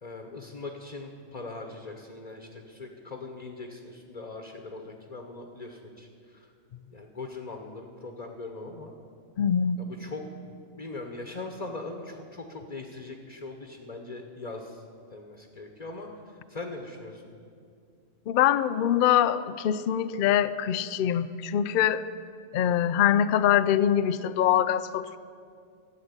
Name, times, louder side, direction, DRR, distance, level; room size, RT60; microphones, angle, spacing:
voice 1, 0.0-6.5 6.9-9.0 9.8-10.2 10.7-14.8 15.1-17.2, left 3 dB, 30° left, 3 dB, 1.0 m, -40 dB
voice 2, 9.4-9.8 18.3-22.0 22.5-25.2, left 10 dB, 65° left, 13 dB, 0.5 m, -24 dB
14.0 x 7.5 x 9.6 m, 2.3 s
omnidirectional pair, 1.4 m